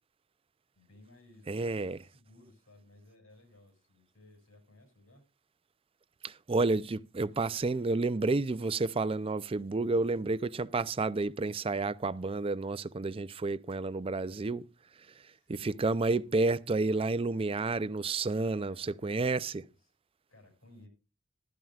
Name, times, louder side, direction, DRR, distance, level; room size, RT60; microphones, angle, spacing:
voice 1, 0.7-5.2 9.7-10.2 15.3-16.4 18.6-19.2 19.6-19.9 20.3-20.9, left 2 dB, 85° left, 5.8 m, -59 dB
voice 2, 1.5-2.0 6.2-14.6 15.5-19.6, right 3 dB, 25° right, 0.4 m, -30 dB
14.5 x 12.0 x 2.4 m
head